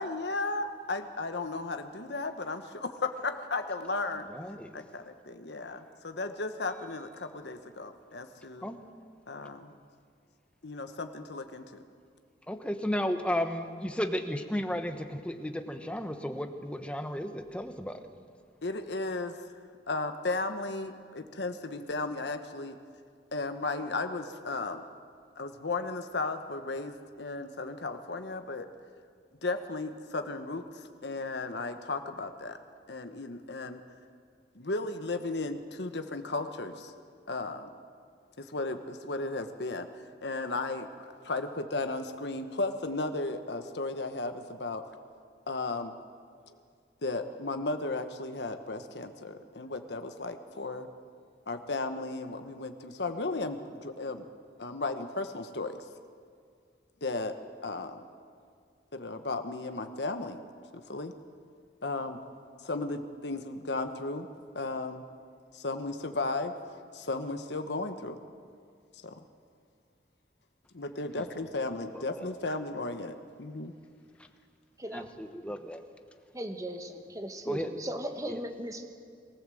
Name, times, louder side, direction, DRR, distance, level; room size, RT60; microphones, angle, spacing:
voice 1, 0.0-4.3 4.7-8.7 9.3-9.7 10.6-11.6 18.6-19.4 19.9-22.8 23.3-24.8 25.4-28.7 29.4-32.6 32.9-33.8 34.5-36.9 37.3-37.7 38.4-39.9 40.2-40.9 41.2-44.8 45.5-45.9 47.0-50.9 51.5-54.2 54.6-55.8 57.0-57.3 57.6-58.0 58.9-60.4 60.9-61.1 61.8-62.2 62.6-64.3 64.5-65.0 65.5-66.5 66.9-68.2 69.0-69.2 70.7-73.7, left 3 dB, 70° left, 8 dB, 1.1 m, -35 dB
voice 2, 4.3-4.8 8.6-8.8 12.5-18.1 71.1-71.2 71.9-72.3 74.2-74.3 74.9-75.8 77.5-77.7 78.3-78.4, equal, 5° left, 7 dB, 1.1 m, -34 dB
voice 3, 76.3-78.9, right 1 dB, 20° right, 6 dB, 1.4 m, -37 dB
22.5 x 15.0 x 7.7 m, 2.2 s
head